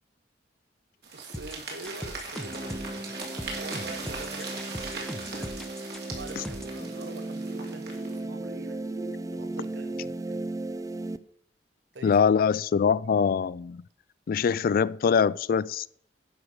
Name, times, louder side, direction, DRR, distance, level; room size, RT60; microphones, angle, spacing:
sound 1, 1.0-8.2, right 3 dB, 65° right, 2.6 m, -40 dB
voice 1, 1.1-5.6 6.1-8.8 9.3-10.5 11.9-12.3, right 3 dB, 80° right, 1.1 m, -45 dB
sound 2, 1.3-6.8, equal, 5° left, 0.8 m, -39 dB
sound 3, 2.4-11.2, right 2 dB, 20° right, 0.4 m, -36 dB
voice 2, 12.0-13.8 14.3-15.9, left 6 dB, 55° left, 0.3 m, -23 dB
11.0 x 4.9 x 6.5 m
head